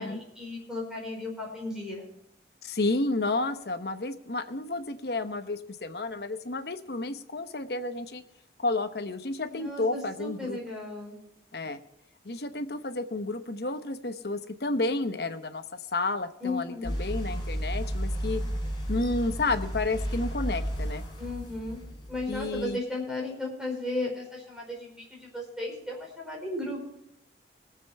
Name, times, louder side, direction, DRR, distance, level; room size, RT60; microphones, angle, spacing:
voice 1, 0.0-2.1 9.5-11.2 16.4-16.9 21.2-21.8 22.1-26.8, left 2 dB, 5° right, -2 dB, 4.6 m, -35 dB
voice 2, 2.6-8.2 8.6-10.6 11.5-11.8 12.2-15.6 15.9-18.4 18.9-21.0 22.3-22.8, left 2 dB, 60° left, 9 dB, 0.9 m, -31 dB
sound 1, 16.8-22.6, equal, 25° left, 4.7 m, -33 dB
22.0 x 7.7 x 4.3 m, 0.83 s
head